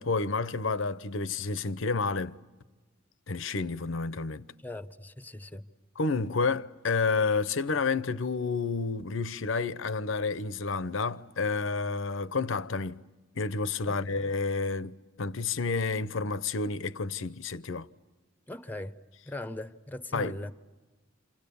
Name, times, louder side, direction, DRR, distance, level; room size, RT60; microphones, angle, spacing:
voice 1, 0.0-2.4 3.3-4.5 6.0-13.1 13.3-17.9 20.1-20.5, left 4 dB, 65° left, 0.8 m, -30 dB
voice 2, 4.6-5.6 13.9-14.0 18.5-19.0 19.3-20.5, left 1 dB, 10° left, 0.8 m, -39 dB
29.0 x 28.0 x 7.0 m
head